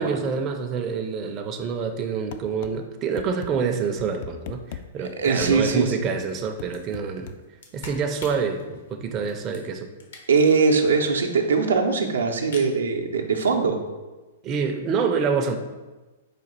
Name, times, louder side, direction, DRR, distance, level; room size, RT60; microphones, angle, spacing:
voice 1, 0.0-7.3 7.7-9.9 14.4-15.6, right 5 dB, 30° right, 4 dB, 0.4 m, -27 dB
sound 1, 2.3-2.7 3.2-3.5 4.0-4.8 5.4-5.8 6.6-7.4, left 8 dB, 55° left, 0.3 m, -38 dB
sound 2, 5.0-5.1 5.4-10.6 10.9-11.0 11.2-11.3 11.5-11.9 12.3-12.7, left 3 dB, 75° left, 1.0 m, -45 dB
voice 2, 5.0-5.9 10.3-13.8, right 4 dB, 85° right, 2 dB, 0.6 m, -21 dB
4.9 x 2.3 x 4.5 m, 1.2 s
hypercardioid pair, 120°, 0 cm